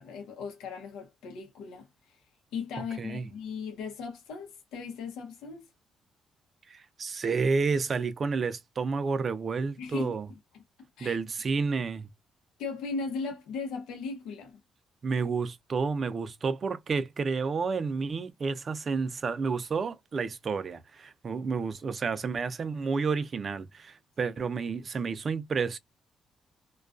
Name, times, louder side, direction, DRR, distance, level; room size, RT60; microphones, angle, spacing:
voice 1, 0.0-2.2 2.5-5.6 9.8-10.1 11.0-11.2 12.6-14.6 24.2-24.3, left 5 dB, 90° left, 0.7 m, -37 dB
voice 2, 3.0-3.3 6.7-10.3 11.0-12.1 15.0-25.8, right 4 dB, 45° right, 0.4 m, -30 dB
2.3 x 2.2 x 2.4 m
cardioid pair, 90°, 0 cm